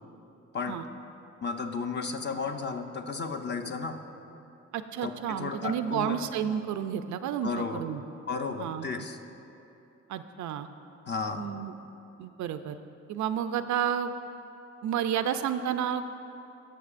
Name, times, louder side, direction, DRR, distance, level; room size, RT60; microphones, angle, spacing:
voice 1, 1.4-4.0 5.0-6.3 7.4-7.8 8.3-9.2 11.0-11.5, left 4 dB, 35° left, 5 dB, 0.7 m, -33 dB
voice 2, 4.7-8.0 8.6-8.9 10.1-10.7 11.4-11.8 12.2-12.8 13.1-14.1 14.8-16.1, right 9 dB, 70° right, 10 dB, 0.5 m, -31 dB
16.5 x 6.7 x 2.5 m, 2.8 s
cardioid pair, 90°, 30 cm